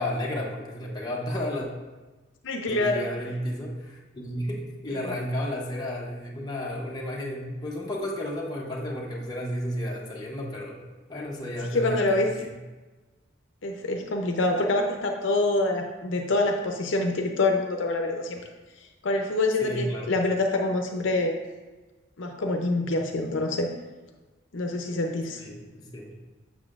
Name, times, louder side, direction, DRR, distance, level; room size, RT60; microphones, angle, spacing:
voice 1, 0.0-1.7 2.7-10.8 11.1-12.5 19.6-20.1 25.4-26.2, left 1 dB, 20° left, -3 dB, 0.8 m, -32 dB
voice 2, 2.4-3.1 4.9-5.1 11.7-12.3 13.6-18.4 19.0-21.4 22.2-23.7 24.5-25.4, left 2 dB, 70° left, 3 dB, 0.6 m, -26 dB
7.0 x 6.6 x 2.5 m, 1.2 s
head